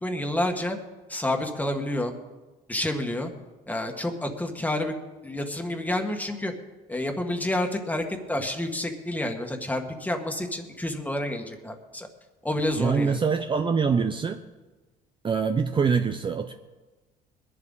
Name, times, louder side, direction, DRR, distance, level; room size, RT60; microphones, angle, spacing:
voice 1, 0.0-0.8 1.1-2.1 2.7-3.3 3.7-4.9 5.2-6.5 6.9-12.1 12.4-13.2, left 1 dB, 10° left, 4 dB, 1.7 m, -29 dB
voice 2, 12.8-14.4 15.2-16.5, right 5 dB, 30° right, 6 dB, 0.7 m, -24 dB
21.5 x 11.0 x 4.0 m, 1.2 s
cardioid pair, 110°, 17 cm